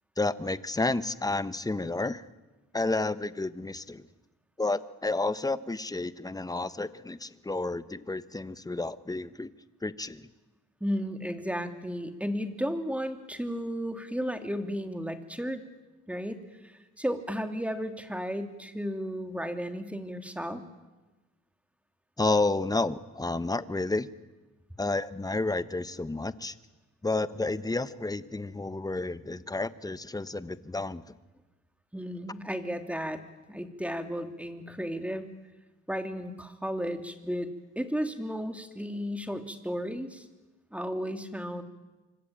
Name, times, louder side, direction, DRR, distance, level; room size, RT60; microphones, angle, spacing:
voice 1, 0.2-2.3 2.7-4.0 4.6-9.5 9.8-10.3 22.2-24.1 24.8-26.5 27.0-31.2, left 2 dB, 10° left, 14 dB, 1.2 m, -31 dB
voice 2, 10.8-15.6 16.1-20.6 31.9-33.2 33.5-35.3 35.9-37.5 37.7-40.3 40.7-41.6, equal, 5° right, 7 dB, 3.1 m, -34 dB
26.5 x 25.0 x 9.0 m, 1.1 s
cardioid pair, 90°, 30 cm